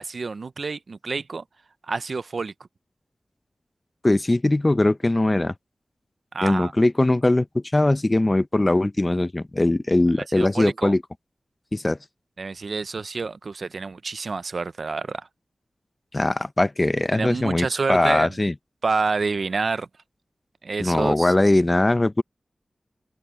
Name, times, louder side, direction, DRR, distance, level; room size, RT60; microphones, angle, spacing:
voice 1, 0.0-1.4 1.9-2.5 6.3-6.7 10.3-10.9 12.4-15.2 17.1-18.3 18.8-19.9 20.6-21.3, right 4 dB, 75° right, 0.6 m, -28 dB
voice 2, 4.0-5.5 6.4-11.0 11.7-12.0 16.1-18.5 20.8-22.2, left 2 dB, 30° left, 0.8 m, -21 dB
cardioid pair, 50°, 0 cm